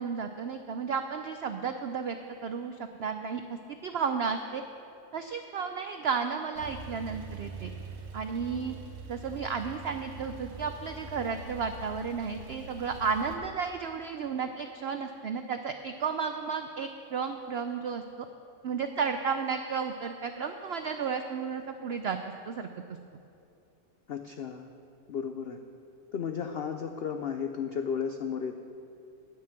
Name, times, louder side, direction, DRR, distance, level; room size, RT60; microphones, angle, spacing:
voice 1, 0.0-2.2 2.4-4.6 5.1-7.7 8.1-8.7 9.1-18.3 18.6-22.2 22.5-22.7, right 6 dB, 90° right, 7 dB, 0.5 m, -33 dB
Male speech man speaking / Car / Idling, 6.6-13.3, right 2 dB, 65° right, 1.4 m, -44 dB
voice 2, 24.1-24.7 25.1-25.6 26.1-28.6, left 7 dB, 85° left, 7 dB, 0.5 m, -34 dB
9.4 x 9.3 x 7.6 m, 2.6 s
omnidirectional pair, 1.7 m